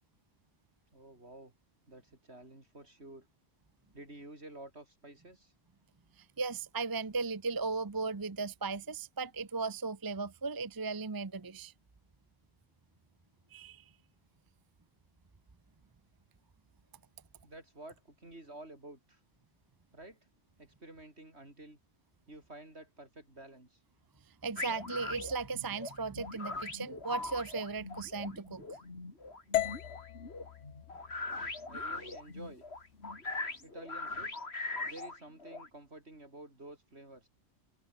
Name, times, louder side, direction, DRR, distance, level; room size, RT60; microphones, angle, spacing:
voice 1, 0.9-1.5 1.9-3.3 3.9-5.5 17.4-19.2 19.9-20.2 20.6-21.8 22.3-23.8 31.7-32.7 33.6-34.4 34.8-37.3, right 1 dB, 60° right, 6.4 m, -51 dB
voice 2, 6.2-11.7 13.5-13.8 24.4-28.7, right 4 dB, 20° right, 0.6 m, -36 dB
sound 1, 24.6-35.7, left 3 dB, 55° left, 3.4 m, -41 dB
sound 2, 29.5-33.7, left 13 dB, 75° left, 0.9 m, -39 dB
omnidirectional pair, 1.3 m